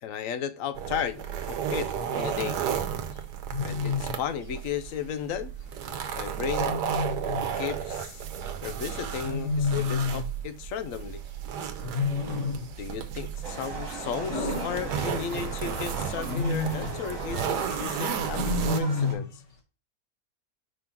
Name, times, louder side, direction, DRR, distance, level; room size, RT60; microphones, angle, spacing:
voice 1, 0.0-1.2 1.5-2.6 3.6-5.5 6.2-6.7 7.6-8.2 8.6-11.2 12.8-19.3, left 8 dB, 65° left, 0.9 m, -34 dB
sound 1, 0.8-18.8, right 8 dB, 90° right, 1.3 m, -33 dB
Wild animals, 1.9-2.3 3.5-4.2 6.6-7.5 9.2-10.3 11.8-12.8 14.3-15.4 16.1-17.0 18.3-19.3, left 4 dB, 50° left, 1.6 m, -30 dB
Livestock farm animals working animals, 13.4-19.1, right 3 dB, 55° right, 1.7 m, -38 dB
5.1 x 3.6 x 5.8 m
omnidirectional pair, 1.7 m